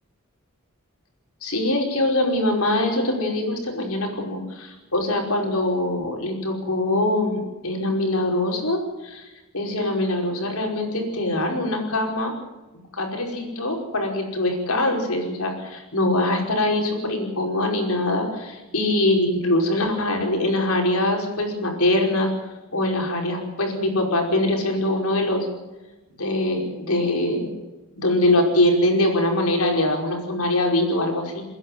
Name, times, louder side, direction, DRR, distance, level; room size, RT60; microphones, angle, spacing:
voice 1, 1.4-9.2 9.5-12.3 12.9-22.3 22.7-25.5 26.2-27.5 28.0-31.4, left 1 dB, 75° left, 2 dB, 5.2 m, -23 dB
29.5 x 10.5 x 9.5 m, 1.1 s
head